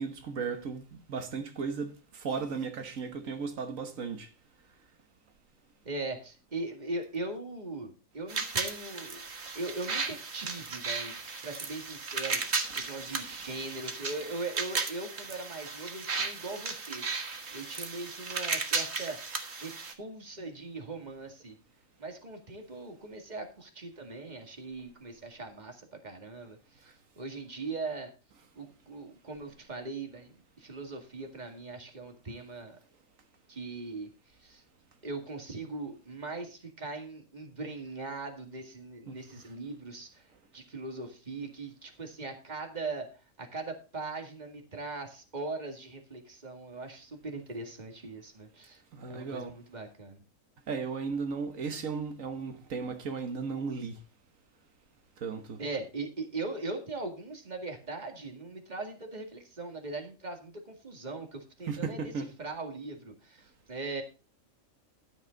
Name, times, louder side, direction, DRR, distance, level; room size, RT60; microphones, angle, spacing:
voice 1, 0.0-4.3 39.1-39.2 48.9-49.5 50.7-54.0 55.2-55.6 61.7-62.3, right 5 dB, 85° right, 1.7 m, -35 dB
voice 2, 5.8-9.2 9.5-17.0 17.5-19.2 19.5-21.6 22.0-28.1 28.6-32.8 33.5-34.6 35.0-48.8 49.1-50.2 55.6-64.0, right 3 dB, 35° right, 2.2 m, -40 dB
sound 1, 8.3-19.9, right 4 dB, 55° right, 1.8 m, -35 dB
12.5 x 8.2 x 3.9 m
omnidirectional pair, 1.3 m